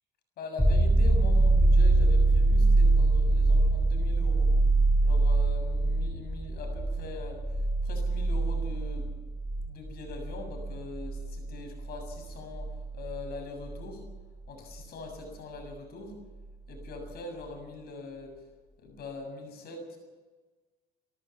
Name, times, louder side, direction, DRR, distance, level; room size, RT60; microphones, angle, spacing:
voice 1, 0.4-4.5 5.0-9.1 9.7-14.0 14.5-16.2 16.7-18.3 18.8-20.0, left 3 dB, 70° left, 4 dB, 7.1 m, -42 dB
sound 1, 0.6-14.1 16.8-16.9, right 2 dB, 5° left, 1.6 m, -24 dB
26.5 x 13.5 x 7.3 m, 1.3 s
cardioid pair, 110°, 17 cm